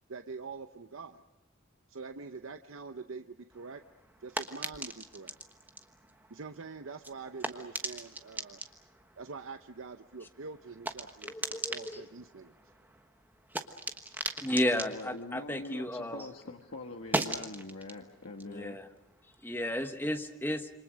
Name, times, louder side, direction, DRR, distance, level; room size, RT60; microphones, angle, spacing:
voice 1, 0.1-1.2 1.9-3.8 4.2-5.4 6.3-8.6 9.2-12.5, right 4 dB, 75° right, 8 dB, 0.8 m, -45 dB
sound 1, 3.5-16.3 16.6-19.8, right 2 dB, 10° right, 1.2 m, -41 dB
voice 2, 11.2-12.0 14.4-16.3 18.5-18.9 19.4-20.7, left 1 dB, 10° left, 7 dB, 1.2 m, -33 dB
voice 3, 14.7-18.8, left 2 dB, 80° left, 2 dB, 1.6 m, -43 dB
27.5 x 25.5 x 6.3 m, 1.0 s
head